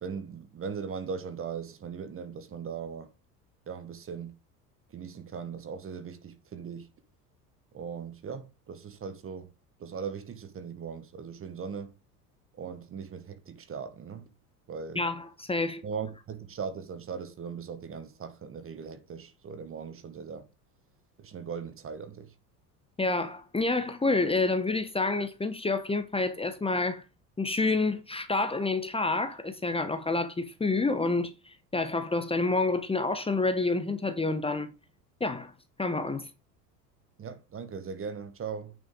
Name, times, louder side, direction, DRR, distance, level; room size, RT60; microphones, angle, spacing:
voice 1, 0.0-3.1 3.7-4.3 4.9-6.9 7.7-9.5 9.8-11.9 12.5-14.2 14.7-15.0 15.8-20.5 21.2-22.3 37.2-38.7, right 6 dB, 25° right, 1.2 m, -39 dB
voice 2, 14.9-15.8 23.0-27.0 27.4-34.7 35.2-35.5 35.8-36.3, left 3 dB, 10° left, 1.1 m, -28 dB
8.9 x 6.5 x 3.9 m
figure-of-eight pair, 75°, 48 cm